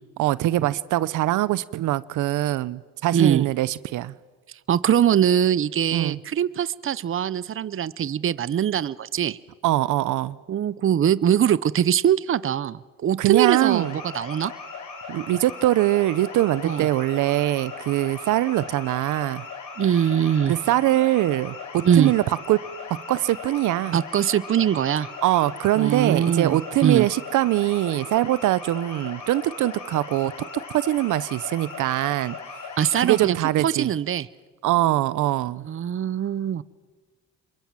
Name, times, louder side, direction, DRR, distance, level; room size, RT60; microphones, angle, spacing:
voice 1, 0.2-4.1 5.9-6.2 9.6-10.4 13.2-14.0 15.1-19.4 20.5-22.6 22.9-24.0 25.2-30.3 30.7-32.3 33.0-33.9 34.6-35.7, right 15 dB, 85° right, 18 dB, 0.7 m, -22 dB
voice 2, 3.1-3.5 4.7-9.4 10.5-13.9 14.1-14.5 16.6-16.9 19.8-20.5 21.8-22.1 23.9-25.1 25.8-27.1 32.8-33.4 33.6-34.3 35.7-36.6, right 9 dB, 45° right, 19 dB, 0.7 m, -22 dB
sound 1, 13.5-33.3, left 5 dB, 75° left, 5.1 m, -38 dB
27.0 x 23.0 x 7.6 m, 1.4 s
cardioid pair, 90°, 30 cm